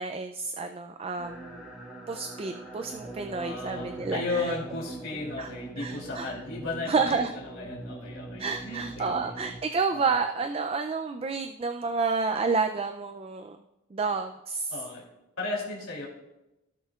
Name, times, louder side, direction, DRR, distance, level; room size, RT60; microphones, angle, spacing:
voice 1, 0.0-1.7 2.1-4.4 5.4-5.5 5.8-6.3 6.9-7.3 8.4-13.6 13.9-14.7, right 4 dB, 30° right, 6 dB, 0.3 m, -30 dB
sound 1, 1.2-9.6, right 2 dB, 5° right, 1.4 m, -42 dB
voice 2, 3.1-9.3 9.9-10.1 14.7-15.1 15.4-16.1, left 3 dB, 85° left, -4 dB, 2.7 m, -35 dB
16.5 x 6.4 x 2.4 m, 0.97 s
head